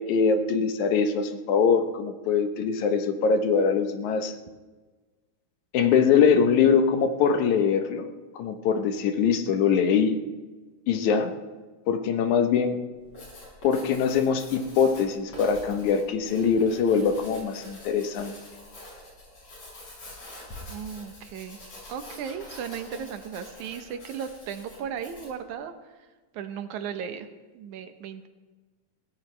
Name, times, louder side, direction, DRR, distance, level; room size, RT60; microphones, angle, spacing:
voice 1, 0.0-4.3 5.7-8.1 8.3-10.2 10.9-11.3 11.9-12.8 13.6-18.3, left 6 dB, 80° left, 7 dB, 2.4 m, -23 dB
Writing, 13.0-25.4, left 1 dB, 55° left, 6.8 m, -45 dB
voice 2, 20.7-21.6 21.9-25.7 26.3-27.3 27.5-28.3, right 7 dB, 80° right, 8 dB, 2.4 m, -36 dB
21.5 x 16.5 x 3.3 m, 1.3 s
omnidirectional pair, 3.4 m